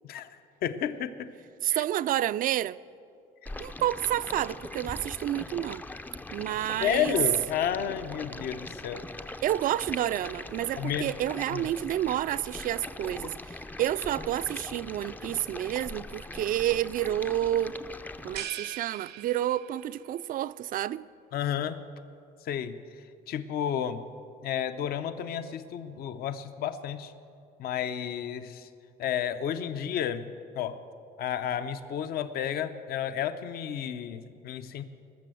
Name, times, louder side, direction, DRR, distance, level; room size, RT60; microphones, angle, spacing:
voice 1, 0.6-1.3 1.7-1.8 6.8-9.0 10.8-11.1 11.5-11.7 21.3-21.8 22.4-22.7 23.3-24.0 24.4-27.1 27.6-28.7 29.0-30.3 30.5-30.8 31.2-34.8, left 9 dB, 65° left, 0.7 m, -31 dB
voice 2, 1.6-2.8 3.6-5.8 6.3-7.2 9.4-17.8 18.2-21.1, right 12 dB, 55° right, 0.4 m, -29 dB
Stream, 3.5-18.5, left 2 dB, 10° left, 0.4 m, -41 dB
sound 1, 18.4-20.1, right 11 dB, 70° right, 0.8 m, -40 dB
19.5 x 6.9 x 7.7 m
cardioid pair, 110°, 17 cm